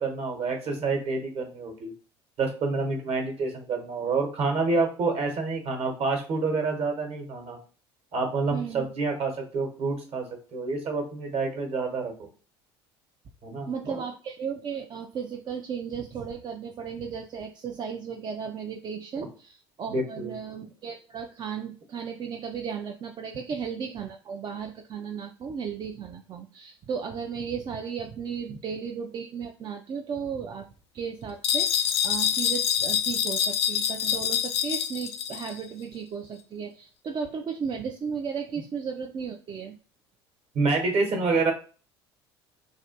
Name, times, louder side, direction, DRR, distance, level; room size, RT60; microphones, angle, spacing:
voice 1, 0.0-1.9 2.4-7.6 8.1-10.2 10.5-12.3 13.4-14.0 19.2-19.3 19.9-20.4 28.5-28.6 40.5-41.5, right 3 dB, 50° right, 3 dB, 1.1 m, -28 dB
voice 2, 8.5-8.9 13.7-30.7 30.9-39.8, right 6 dB, 30° right, 3 dB, 0.4 m, -35 dB
sound 1, 31.4-35.6, left 9 dB, 75° left, 0.4 m, -26 dB
3.2 x 2.4 x 2.8 m, 0.38 s
figure-of-eight pair, 65°, 14 cm